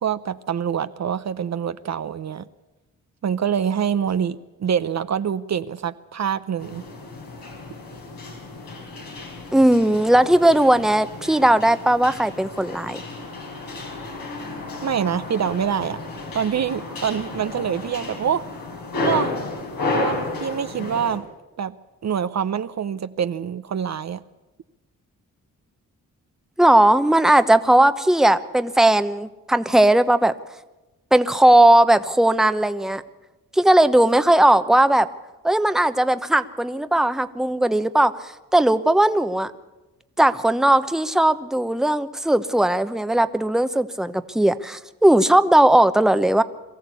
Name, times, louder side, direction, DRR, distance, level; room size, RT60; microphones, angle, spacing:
voice 1, 0.0-2.4 3.2-6.9 14.8-16.0 16.3-18.4 19.0-19.3 19.9-21.3 21.6-21.8 22.0-24.2, right 8 dB, 50° right, 12 dB, 0.7 m, -25 dB
sound 1, 6.6-21.2, left 2 dB, 85° left, 4.9 m, -32 dB
voice 2, 9.5-13.0 26.6-30.3 31.1-33.0 33.5-35.1 35.4-39.5 40.2-46.4, right 1 dB, ahead, 11 dB, 0.9 m, -17 dB
23.0 x 14.5 x 8.4 m, 1.1 s
cardioid pair, 70°, 34 cm